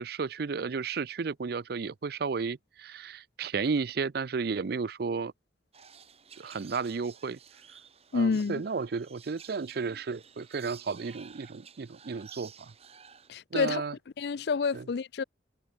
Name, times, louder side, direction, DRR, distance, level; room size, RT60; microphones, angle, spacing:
voice 1, 0.0-5.3 6.4-7.4 8.1-12.7 13.5-13.9 14.7-14.9, right 5 dB, 60° right, 0.5 m, -33 dB
sound 1, 5.7-13.3, right 7 dB, 35° right, 3.7 m, -53 dB
voice 2, 8.1-8.6 13.3-13.8 14.2-15.2, left 5 dB, 65° left, 0.4 m, -28 dB
head